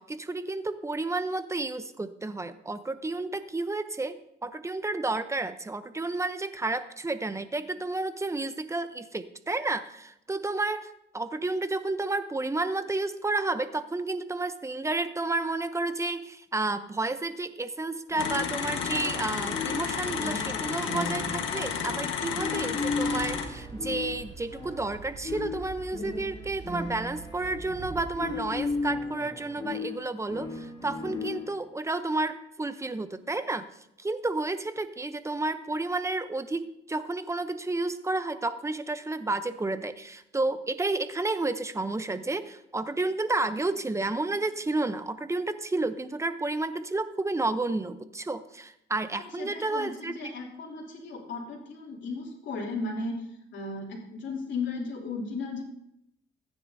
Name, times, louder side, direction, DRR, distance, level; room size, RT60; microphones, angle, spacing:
voice 1, 0.0-33.7 34.0-50.3, right 2 dB, 15° right, 11 dB, 0.7 m, -31 dB
sound 1, 18.1-31.7, left 3 dB, 20° left, 2.1 m, -36 dB
sound 2, 18.2-23.4, left 7 dB, 85° left, 1.4 m, -32 dB
sound 3, 22.9-29.1, right 4 dB, 65° right, 1.8 m, -45 dB
voice 2, 49.4-55.6, left 3 dB, 70° left, -1 dB, 3.0 m, -35 dB
15.0 x 9.8 x 2.7 m, 0.79 s
cardioid pair, 90°, 20 cm